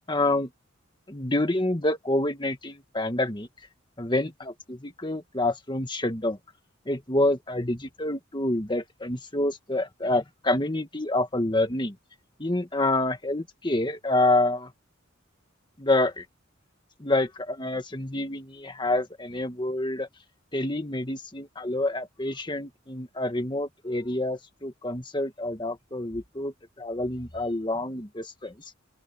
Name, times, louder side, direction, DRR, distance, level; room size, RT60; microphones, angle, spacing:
voice 1, 0.1-0.5 1.1-3.5 4.0-6.4 6.9-12.0 12.4-14.7 15.8-16.3 17.0-20.1 20.5-28.5, left 2 dB, 25° left, 1.7 m, -27 dB
open air
head